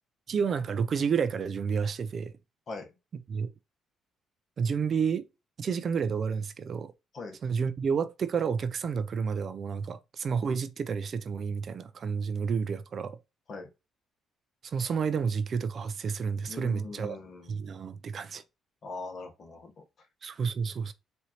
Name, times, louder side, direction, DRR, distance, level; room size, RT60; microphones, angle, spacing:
voice 1, 0.3-2.3 3.3-3.5 4.6-5.3 5.6-6.9 7.4-13.2 14.6-17.2 17.5-18.4 20.2-20.9, right 6 dB, 50° right, 0.4 m, -30 dB
voice 2, 16.5-17.6 18.8-19.8, left 3 dB, 50° left, 1.2 m, -41 dB
4.3 x 2.6 x 2.9 m
cardioid pair, 80°, 0 cm